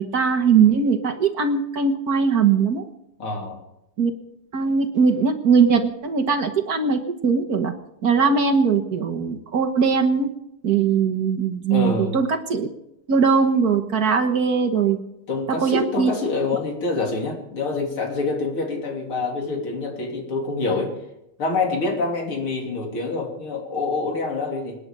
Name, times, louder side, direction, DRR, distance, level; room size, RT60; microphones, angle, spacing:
voice 1, 0.0-2.9 4.0-4.1 4.5-7.7 8.0-10.3 10.6-12.7 13.1-15.0 15.5-16.1, right 5 dB, 50° right, 4 dB, 1.6 m, -20 dB
voice 2, 3.2-3.6 11.7-12.2 15.3-20.9 21.4-24.8, left 3 dB, 85° left, 1 dB, 4.2 m, -26 dB
26.5 x 9.8 x 5.3 m, 0.82 s
omnidirectional pair, 2.3 m